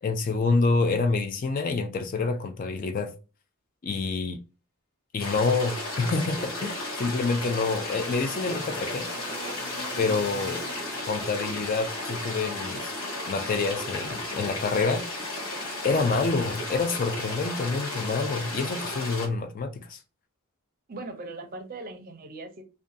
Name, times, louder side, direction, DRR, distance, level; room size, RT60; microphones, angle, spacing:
voice 1, 0.0-3.1 3.8-4.4 5.1-9.1 10.0-10.6 11.0-12.9 13.3-15.0 15.8-20.0, left 4 dB, 40° left, 0.3 m, -27 dB
sound 1, 5.2-19.3, left 1 dB, 60° left, 1.2 m, -34 dB
sound 2, 6.6-11.4, left 2 dB, 80° left, 0.9 m, -42 dB
voice 2, 20.9-22.6, right 2 dB, 40° right, 0.5 m, -39 dB
2.5 x 2.2 x 2.6 m
head